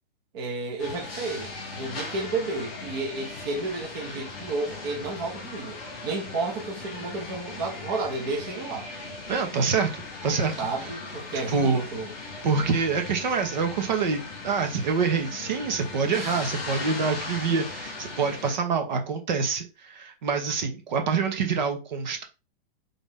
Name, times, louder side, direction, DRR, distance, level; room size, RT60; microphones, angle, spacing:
voice 1, 0.3-5.8 6.0-8.9 10.6-12.1, right 3 dB, 25° right, 1.0 m, -32 dB
sound 1, 0.8-18.5, left 3 dB, 10° left, 0.4 m, -38 dB
voice 2, 9.3-10.5 11.3-11.8 12.4-22.2, right 5 dB, 50° right, 1.1 m, -26 dB
4.0 x 3.4 x 3.5 m
hypercardioid pair, 180°, 29 cm